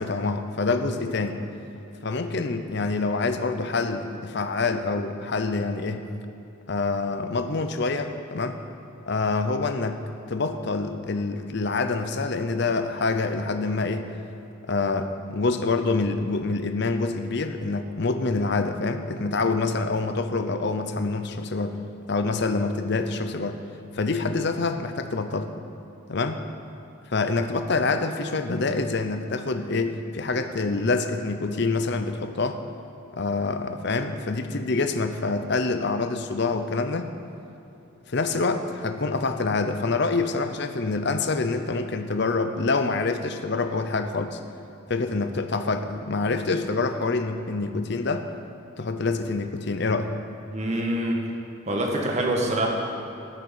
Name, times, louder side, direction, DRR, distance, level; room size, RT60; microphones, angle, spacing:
voice 1, 0.0-1.4 2.0-6.1 6.7-8.6 9.1-10.0 10.3-14.1 14.7-21.8 22.1-23.6 23.9-25.5 26.1-26.4 27.1-32.6 33.1-37.1 38.1-44.4 44.9-48.3 48.8-50.1, left 3 dB, 50° left, 8 dB, 0.7 m, -26 dB
voice 2, 50.5-51.2 51.7-52.7, right 1 dB, 30° right, 0 dB, 1.6 m, -25 dB
13.5 x 6.7 x 8.3 m, 2.9 s
head